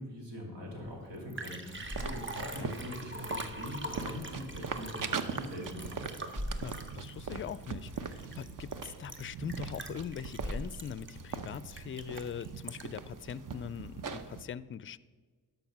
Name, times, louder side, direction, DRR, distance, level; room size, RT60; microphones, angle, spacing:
voice 1, 0.0-6.0, left 1 dB, 80° right, 0 dB, 2.6 m, -42 dB
Liquid, 0.8-0.9 1.1-13.1 13.5-13.6, right 1 dB, 30° right, 1.2 m, -42 dB
sound 1, 1.7-14.4, right 5 dB, 50° right, 0.8 m, -41 dB
voice 2, 6.6-15.0, left 8 dB, 30° left, 18 dB, 0.4 m, -42 dB
12.0 x 5.4 x 5.9 m, 1.5 s
supercardioid pair, 45°, 42 cm